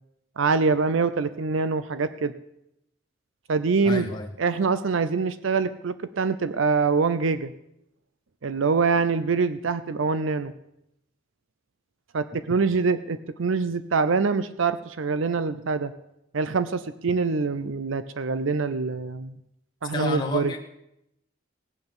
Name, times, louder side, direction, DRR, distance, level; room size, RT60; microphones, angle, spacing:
voice 1, 0.4-2.3 3.5-4.1 4.4-7.5 8.4-10.5 12.1-15.9 16.3-19.4 19.8-20.5, right 4 dB, 75° right, 13 dB, 0.6 m, -24 dB
voice 2, 3.8-4.3 19.9-20.6, left 2 dB, 20° left, 0 dB, 0.9 m, -30 dB
18.0 x 8.0 x 7.0 m, 0.82 s
head